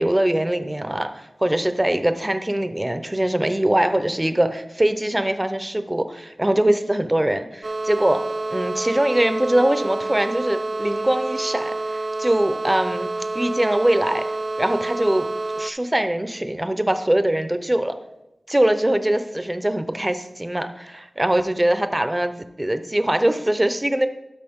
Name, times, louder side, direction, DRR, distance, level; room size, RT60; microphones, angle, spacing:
voice 1, 0.0-8.2 8.5-13.1 13.3-14.2 14.6-15.3 15.6-17.9 18.5-24.1, right 1 dB, 20° right, 9 dB, 0.7 m, -22 dB
sound 1, 7.6-15.7, right 2 dB, 55° right, 0.3 m, -28 dB
11.5 x 5.9 x 3.6 m, 0.94 s
wide cardioid pair, 55°, 0 cm